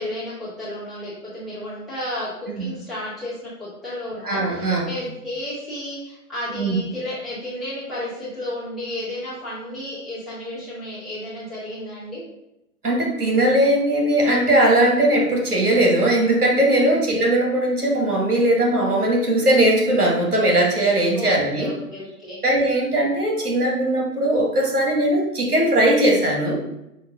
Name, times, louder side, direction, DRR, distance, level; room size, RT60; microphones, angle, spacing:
voice 1, 0.0-12.2 16.8-17.0 21.1-22.4, left 1 dB, ahead, -11 dB, 1.3 m, -32 dB
voice 2, 4.2-4.9 6.5-6.8 12.8-21.7 22.4-26.6, right 1 dB, 80° right, -1 dB, 1.6 m, -19 dB
5.5 x 2.4 x 3.5 m, 0.85 s
figure-of-eight pair, 130°, 45 cm